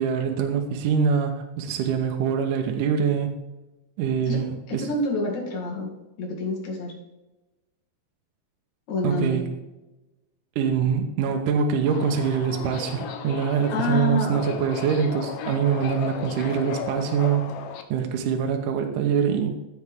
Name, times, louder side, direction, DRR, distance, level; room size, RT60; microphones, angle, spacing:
voice 1, 0.0-3.3 4.0-4.9 9.0-9.5 10.6-17.5 17.9-19.5, right 7 dB, 75° right, 4 dB, 2.2 m, -24 dB
voice 2, 4.7-5.9 6.2-6.9 8.9-9.4 13.7-14.4, left 2 dB, 60° left, -2 dB, 3.5 m, -27 dB
Subway metro underground, 11.9-17.8, left 7 dB, 80° left, 2.3 m, -35 dB
14.5 x 5.8 x 3.6 m, 1.0 s
omnidirectional pair, 4.1 m